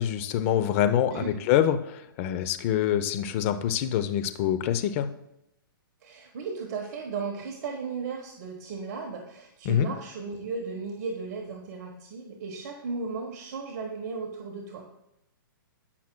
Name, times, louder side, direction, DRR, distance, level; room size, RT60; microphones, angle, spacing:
voice 1, 0.0-5.1 9.6-9.9, left 10 dB, 35° left, 10 dB, 0.7 m, -25 dB
voice 2, 6.0-15.0, right 4 dB, 45° right, 2 dB, 1.3 m, -35 dB
15.5 x 5.9 x 2.3 m, 0.84 s
hypercardioid pair, 140°, 12 cm